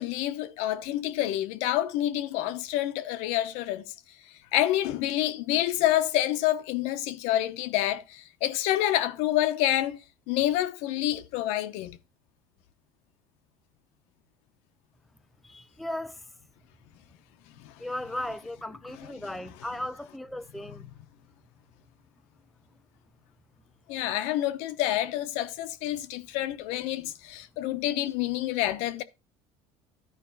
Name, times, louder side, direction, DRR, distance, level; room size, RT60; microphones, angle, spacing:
voice 1, 0.0-3.9 4.5-10.0 10.3-12.0 17.6-17.7 23.9-29.0, left 13 dB, 80° left, 0.9 m, -28 dB
voice 2, 15.4-16.2 17.8-20.8, left 1 dB, ahead, 0.4 m, -36 dB
13.0 x 5.1 x 4.0 m
cardioid pair, 115°, 11 cm